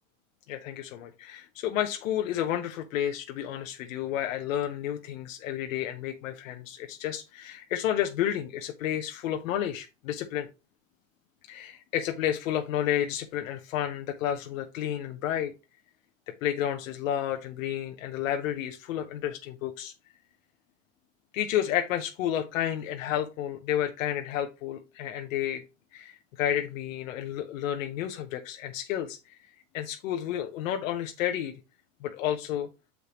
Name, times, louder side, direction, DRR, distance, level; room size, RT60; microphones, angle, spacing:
voice 1, 0.5-10.5 11.5-15.5 16.3-19.9 21.3-25.6 25.9-29.4 29.7-31.5 32.0-32.7, left 11 dB, 80° left, 0.9 m, -31 dB
6.5 x 5.2 x 2.9 m
hypercardioid pair, 100°, 39 cm